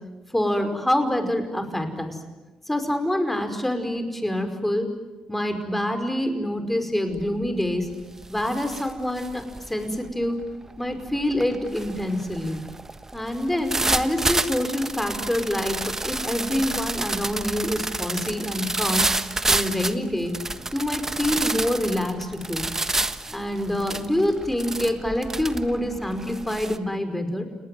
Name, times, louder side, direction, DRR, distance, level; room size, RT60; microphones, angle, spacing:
voice 1, 0.3-2.2 2.7-4.9 5.3-7.9 8.3-10.4 10.8-12.6 13.1-19.1 19.5-20.3 20.7-22.7 23.3-27.4, left 1 dB, 10° left, 7 dB, 5.3 m, -26 dB
sound 1, 7.1-7.5 7.8-26.8, right 2 dB, 20° right, 1.4 m, -29 dB
30.0 x 19.0 x 9.4 m, 1.2 s
supercardioid pair, 60°, 2 cm